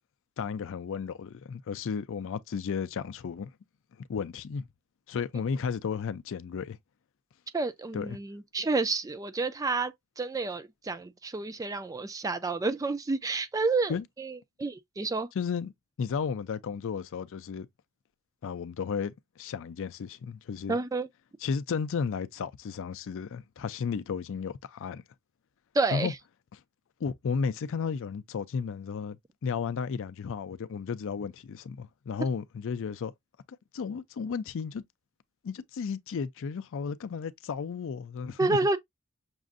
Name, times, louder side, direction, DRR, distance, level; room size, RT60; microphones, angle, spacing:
voice 1, 0.4-3.5 4.1-4.7 5.1-6.8 7.9-8.2 13.9-14.0 15.3-15.7 16.0-17.7 18.4-20.8 21.4-25.0 25.9-26.1 26.5-26.6 27.0-33.1 33.7-34.8 35.4-38.6, left 6 dB, 60° left, 0.4 m, -33 dB
voice 2, 7.5-15.3 20.7-21.1 25.7-26.1 38.4-38.8, right 3 dB, 15° right, 0.3 m, -30 dB
6.1 x 2.5 x 2.5 m
head